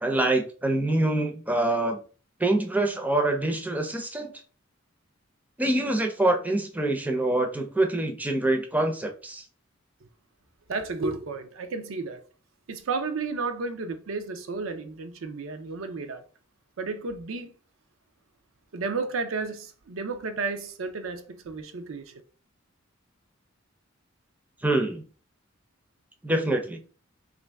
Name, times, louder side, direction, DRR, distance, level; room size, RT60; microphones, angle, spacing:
voice 1, 0.0-2.0 2.4-4.3 5.6-9.4 24.6-25.0 26.2-26.8, right 2 dB, 10° right, 0.5 m, -25 dB
voice 2, 10.7-12.2 12.7-16.2 16.8-17.5 18.7-22.1, right 4 dB, 80° right, 0.5 m, -32 dB
3.0 x 2.5 x 3.3 m
head